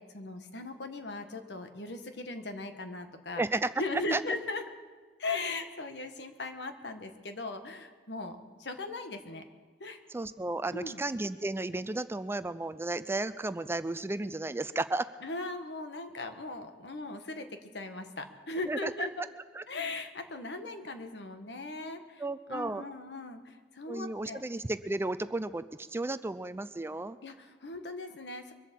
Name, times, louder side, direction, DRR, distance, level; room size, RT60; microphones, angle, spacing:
voice 1, 0.0-3.4 3.8-4.6 5.2-9.4 9.8-10.0 10.7-11.0 15.2-19.1 19.7-22.2 22.5-24.4 27.2-28.5, left 2 dB, 70° left, 7 dB, 1.3 m, -38 dB
voice 2, 3.4-3.7 4.1-4.2 10.1-15.1 18.7-19.3 19.5-19.6 22.2-22.8 23.9-27.2, right 2 dB, 15° right, 13 dB, 0.4 m, -33 dB
23.0 x 8.1 x 7.5 m, 1.4 s
head